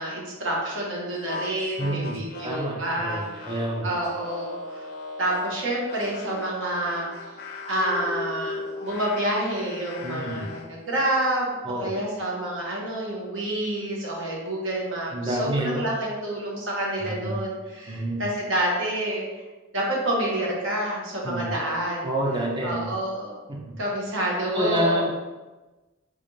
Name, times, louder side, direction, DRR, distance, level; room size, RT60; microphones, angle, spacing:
voice 1, 0.0-3.5 3.8-4.9 5.2-7.1 7.7-19.2 19.7-22.1 22.6-23.4 23.8-25.0, right 1 dB, 65° right, -2 dB, 1.0 m, -28 dB
sound 1, 1.1-5.4 5.9-10.7, left 3 dB, 50° left, 0.4 m, -38 dB
voice 2, 1.8-3.9 10.0-10.4 11.6-12.0 15.1-15.8 17.0-17.4 17.9-18.3 21.2-21.5 22.0-22.9 23.5-23.8 24.5-25.1, right 1 dB, 25° right, -2 dB, 0.6 m, -28 dB
3.9 x 2.4 x 3.1 m, 1.2 s
head